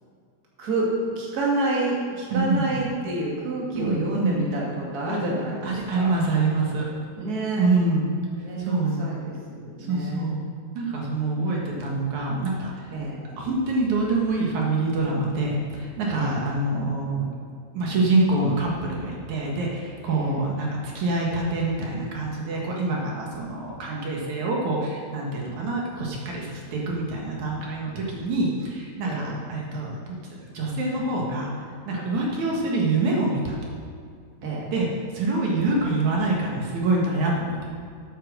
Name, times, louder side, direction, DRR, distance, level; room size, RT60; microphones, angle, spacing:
voice 1, 0.6-6.1 7.1-7.6 8.4-10.3 11.4-11.8 12.9-13.2 16.1-16.4 20.0-20.4 29.0-29.4 34.4-34.7, right 2 dB, 35° right, -4 dB, 2.4 m, -29 dB
voice 2, 2.3-2.7 3.8-4.5 5.1-5.2 5.6-6.9 7.6-8.1 8.6-9.0 9.9-10.3 10.7-12.7 13.4-17.2 17.7-20.7 20.9-31.5 31.9-33.6 34.7-34.9 35.1-37.7, right 2 dB, 75° right, -2 dB, 2.9 m, -25 dB
8.7 x 8.3 x 6.5 m, 2.2 s
omnidirectional pair, 3.4 m